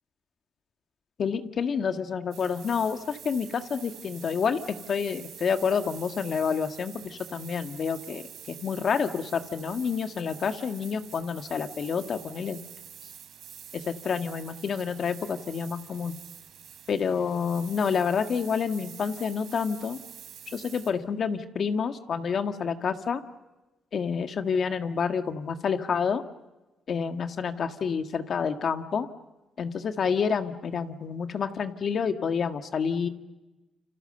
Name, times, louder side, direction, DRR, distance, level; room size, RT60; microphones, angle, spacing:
voice 1, 1.2-12.6 13.7-16.2 16.9-20.0 20.5-23.2 23.9-26.2 26.9-29.1 29.6-33.1, left 6 dB, 55° left, 7 dB, 1.7 m, -28 dB
sound 1, 2.3-20.9, right 9 dB, 75° right, 3.7 m, -47 dB
29.0 x 26.5 x 6.8 m, 1.1 s
cardioid pair, 90°, 0 cm